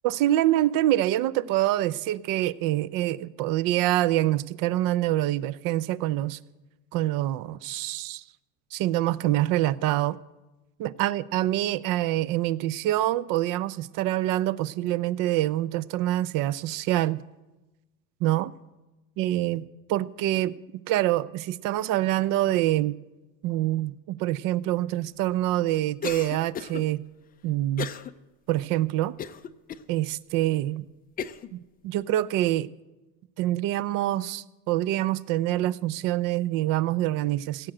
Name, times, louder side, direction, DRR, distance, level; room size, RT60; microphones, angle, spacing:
voice 1, 0.0-6.4 6.9-8.2 8.7-10.2 10.8-17.2 18.2-18.5 19.2-19.6 19.9-20.5 20.9-23.0 23.4-27.0 27.4-27.9 28.5-29.1 29.9-30.9 31.5-32.7 33.4-37.7, right 14 dB, 50° right, 19 dB, 0.6 m, -25 dB
Cough, 26.0-26.8 27.8-28.1 28.6-28.7 29.2-29.8 30.5-30.6 31.2-31.5, left 8 dB, 20° left, 0.4 m, -34 dB
16.5 x 7.5 x 7.8 m, 1.1 s
supercardioid pair, 120°, 43 cm